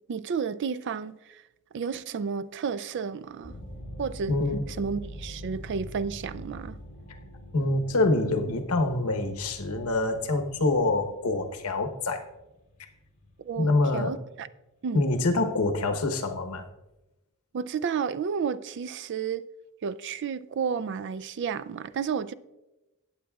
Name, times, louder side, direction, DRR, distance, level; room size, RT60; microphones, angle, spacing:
voice 1, 0.1-1.4 1.7-3.5 4.0-4.4 4.8-6.8 13.4-14.5 14.8-15.0 17.5-19.4 19.8-22.3, right 6 dB, 55° right, 0.3 m, -31 dB
sound 1, 3.4-14.4, equal, 40° left, 2.3 m, -44 dB
voice 2, 4.3-4.6 7.5-12.3 13.6-14.2 14.9-16.6, left 2 dB, 90° left, 1.0 m, -26 dB
17.5 x 7.3 x 2.3 m
head